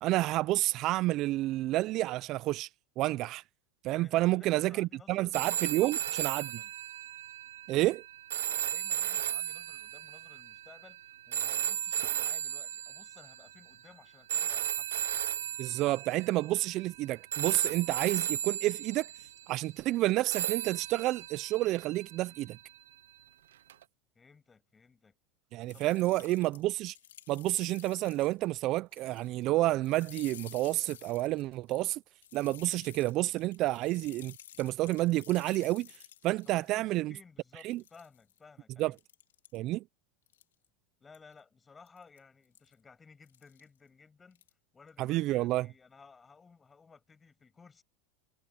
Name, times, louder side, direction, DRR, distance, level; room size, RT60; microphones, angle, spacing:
voice 1, 0.0-2.7 3.0-3.4 3.8-6.6 7.7-8.0 15.6-19.1 19.5-22.6 25.5-27.0 27.3-32.0 32.3-36.0 36.2-37.1 37.6-37.8 38.8-38.9 39.5-39.8 45.0-45.7, right 17 dB, 50° right, 0.5 m, -30 dB
voice 2, 3.9-6.7 8.5-15.3 22.2-22.5 24.1-25.2 25.7-26.4 36.4-39.0 41.0-44.4 44.7-47.8, left 5 dB, 20° left, 7.2 m, -58 dB
sound 1, 5.3-13.5 14.3-17.0 17.3-19.4 20.3-22.5 23.7-23.8, right 11 dB, 85° right, 0.8 m, -35 dB
sound 2, 25.7-28.5 28.8-29.5 29.8-36.7 37.1-37.2 37.6-38.4 38.9-39.6 40.3-40.6 41.1-41.3 41.9-42.2 42.5-42.7 43.2-43.6 44.3-44.5 44.9-45.1, left 11 dB, 90° left, 3.6 m, -52 dB
hypercardioid pair, 100°, 0 cm